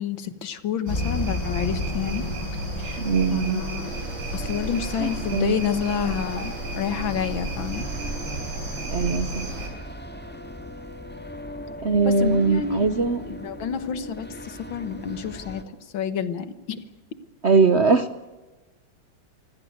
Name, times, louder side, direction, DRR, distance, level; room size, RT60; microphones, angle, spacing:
voice 1, 0.0-2.2 2.8-3.0 3.3-3.9 4.3-7.9 12.1-16.8, left 7 dB, 75° left, 12 dB, 2.1 m, -29 dB
sound 1, 0.9-4.1, left 3 dB, 25° left, 0.8 m, -32 dB
sound 2, 0.9-9.7, right 2 dB, 80° right, 6.9 m, -32 dB
voice 2, 3.0-3.6 5.0-5.5 8.9-9.5 11.8-13.2 17.4-18.3, right 4 dB, 50° right, 11 dB, 0.8 m, -21 dB
sound 3, 3.8-15.6, equal, 5° left, 2.0 m, -39 dB
25.0 x 16.5 x 9.4 m, 1.2 s
omnidirectional pair, 2.2 m